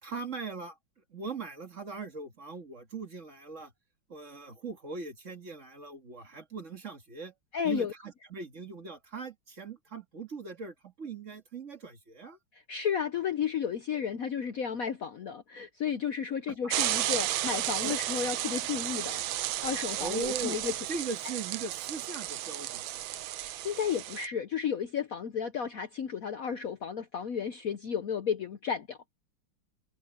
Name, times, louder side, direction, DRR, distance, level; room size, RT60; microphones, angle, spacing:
voice 1, 0.0-0.8 1.1-3.7 4.1-7.3 7.6-12.4 16.5-16.6 17.8-18.0 20.0-20.6 20.9-23.0, right 4 dB, 40° right, 2.1 m, -40 dB
voice 2, 7.5-7.9 12.5-19.2 19.6-20.7 23.4-29.0, left 7 dB, 55° left, 1.0 m, -33 dB
sound 1, 16.7-24.3, right 14 dB, 80° right, 1.4 m, -33 dB
omnidirectional pair, 2.2 m